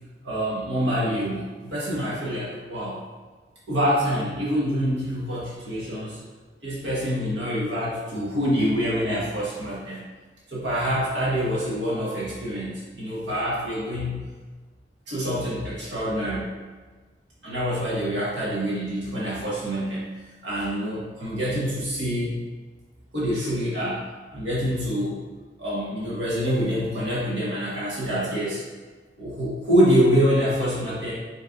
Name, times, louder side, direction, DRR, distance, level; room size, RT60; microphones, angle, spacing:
voice 1, 0.2-3.0 3.7-6.2 6.6-10.0 10.5-14.2 15.1-16.5 17.4-20.1 20.4-22.4 23.1-24.0 24.3-25.2 25.6-28.6 29.2-31.1, equal, 75° right, -7 dB, 1.2 m, -26 dB
5.3 x 3.3 x 2.5 m, 1.3 s
head